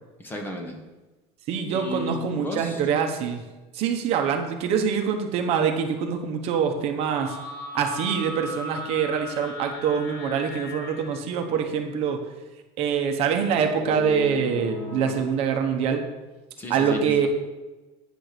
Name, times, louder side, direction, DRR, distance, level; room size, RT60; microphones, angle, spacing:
voice 1, 0.2-0.8 1.7-2.8 16.6-17.3, left 1 dB, 15° left, 3 dB, 1.0 m, -34 dB
voice 2, 1.5-3.4 3.7-7.4 7.7-12.2 12.8-16.0 16.7-17.3, right 7 dB, 45° right, 4 dB, 1.0 m, -25 dB
sound 1, 7.0-11.3 13.3-15.2, left 1 dB, 50° left, 2.1 m, -36 dB
9.2 x 4.5 x 6.6 m, 1.1 s
cardioid pair, 165°, 14 cm